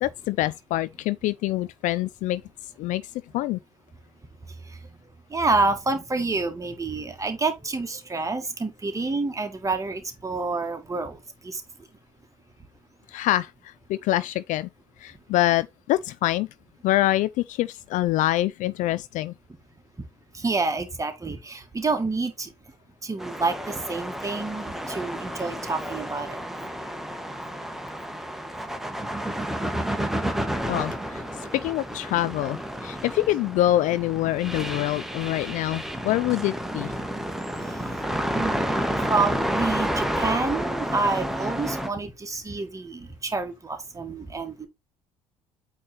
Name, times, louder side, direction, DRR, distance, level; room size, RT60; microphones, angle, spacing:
voice 1, 0.0-2.4 2.8-3.0 3.3-3.6 13.1-14.7 15.0-16.5 16.8-19.3 30.7-36.9, left 15 dB, 50° left, 0.4 m, -25 dB
voice 2, 5.3-11.2 11.4-11.6 20.3-22.5 23.0-26.4 37.8-37.9 38.3-44.7, right 3 dB, 20° right, 1.7 m, -28 dB
sound 1, 23.2-41.9, equal, ahead, 1.4 m, -30 dB
8.4 x 3.3 x 4.2 m
figure-of-eight pair, 55°, 17 cm